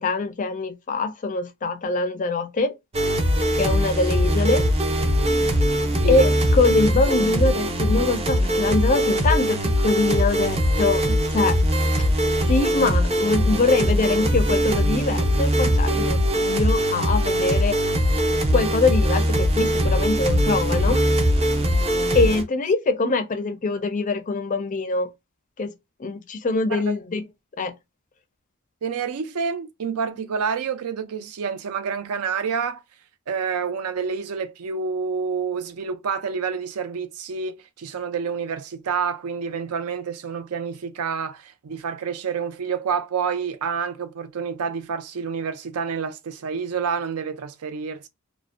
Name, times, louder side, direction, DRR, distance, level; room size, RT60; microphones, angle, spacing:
voice 1, 0.0-2.8 3.6-4.7 5.0-5.1 6.1-11.6 12.4-17.7 18.5-21.0 22.1-25.1 25.6-25.7 26.0-27.3 27.6-27.7, left 3 dB, 35° left, 0.4 m, -23 dB
sound 1, 2.9-22.4, equal, 25° right, 0.4 m, -21 dB
voice 2, 28.8-32.8 33.3-48.1, right 6 dB, 80° right, 0.4 m, -28 dB
2.5 x 2.0 x 2.4 m
head